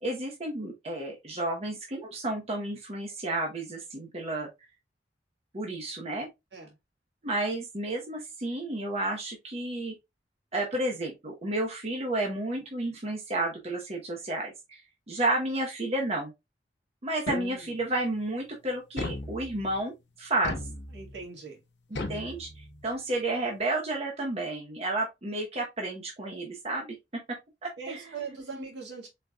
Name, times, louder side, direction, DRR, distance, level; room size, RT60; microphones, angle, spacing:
voice 1, 0.0-4.5 5.5-6.3 7.2-9.9 10.5-14.8 15.1-16.3 17.0-20.5 22.1-27.0 27.3-28.7, right 2 dB, 35° right, 1.0 m, -32 dB
sound 1, 17.3-17.9 19.0-19.8 20.4-21.2 21.9-23.0, left 2 dB, 75° left, 0.9 m, -37 dB
voice 2, 20.9-21.6 27.8-29.1, right 5 dB, 70° right, 1.8 m, -40 dB
4.4 x 4.1 x 2.3 m
head